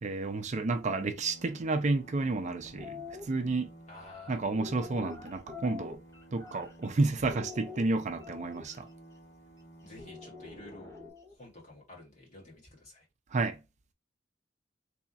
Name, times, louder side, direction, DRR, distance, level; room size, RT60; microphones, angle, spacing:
voice 1, 0.0-3.7 4.3-6.0 6.3-8.9 13.3-13.6, right 3 dB, 40° right, 0.5 m, -31 dB
sound 1, 1.2-11.1, right 1 dB, 80° left, 1.9 m, -54 dB
sound 2, 2.6-3.2 4.0-6.9 7.3-8.8 10.0-11.3, left 4 dB, 15° left, 0.9 m, -45 dB
voice 2, 3.9-4.4 9.8-10.9 11.3-13.0, left 2 dB, 40° left, 1.8 m, -51 dB
3.4 x 2.4 x 4.0 m
head